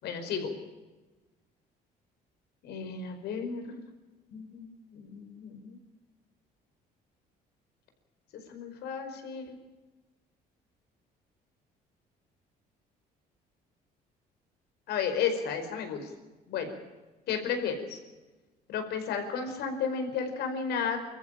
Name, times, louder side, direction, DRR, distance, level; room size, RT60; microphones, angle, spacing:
voice 1, 0.0-0.6 2.6-3.8 4.3-5.8 8.5-9.6 14.9-16.1 16.5-16.7 17.3-18.0 18.7-21.0, left 6 dB, 75° left, 6 dB, 5.0 m, -33 dB
25.0 x 14.5 x 8.9 m, 1.2 s
cardioid pair, 110°, 17 cm